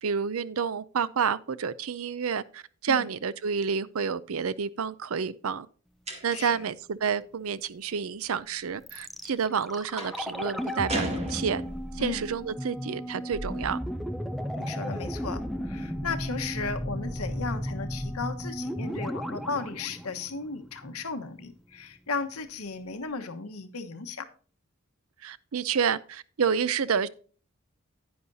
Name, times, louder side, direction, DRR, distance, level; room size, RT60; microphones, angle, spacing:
voice 1, 0.0-5.7 6.2-11.6 11.9-13.8 25.2-27.1, right 6 dB, 75° right, 0.5 m, -29 dB
sound 1, 6.1-6.6 10.0-10.3 10.9-12.0, right 1 dB, 30° right, 2.0 m, -35 dB
voice 2, 6.3-6.6 12.0-12.2 14.5-24.3, left 4 dB, 90° left, 1.2 m, -35 dB
sound 2, 8.9-20.9 21.1-21.2, equal, ahead, 0.5 m, -34 dB
10.0 x 9.6 x 2.7 m
head